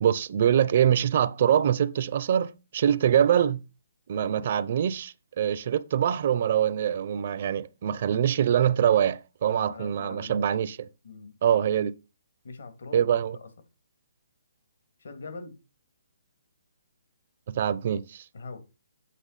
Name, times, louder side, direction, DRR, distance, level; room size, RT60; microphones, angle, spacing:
voice 1, 0.0-3.6 4.1-10.8 11.4-11.9 12.9-13.4 17.5-18.2, right 9 dB, 40° right, 0.5 m, -24 dB
voice 2, 9.5-10.4 11.0-11.4 12.4-13.5 15.0-15.5 18.3-18.6, left 3 dB, 70° left, 2.1 m, -42 dB
8.2 x 5.9 x 4.0 m
hypercardioid pair, 170°, 0 cm